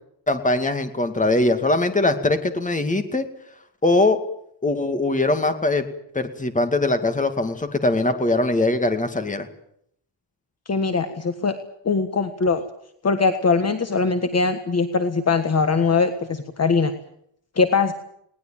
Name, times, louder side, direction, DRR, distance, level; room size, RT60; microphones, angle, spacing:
voice 1, 0.3-3.3 3.8-4.2 4.6-5.9 6.1-9.5, left 2 dB, 15° left, 7 dB, 2.2 m, -21 dB
voice 2, 10.7-11.5 11.8-12.6 13.0-16.9 17.6-17.9, left 4 dB, 35° left, 8 dB, 1.5 m, -21 dB
20.5 x 19.0 x 9.1 m, 0.70 s
wide cardioid pair, 155°, 46 cm